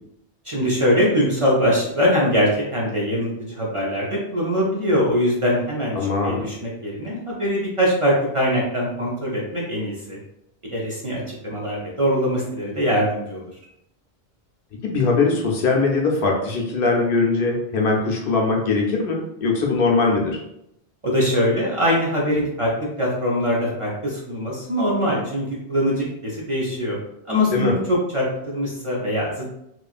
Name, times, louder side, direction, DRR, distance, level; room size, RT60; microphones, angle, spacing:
voice 1, 0.4-6.0 6.2-10.2 10.7-13.4 21.0-27.0 27.3-29.6, equal, 40° right, -4 dB, 0.5 m, -22 dB
voice 2, 6.0-6.5 14.8-20.4 27.5-27.7, left 4 dB, 65° left, -1 dB, 0.8 m, -21 dB
2.9 x 2.4 x 2.4 m, 0.78 s
omnidirectional pair, 1.0 m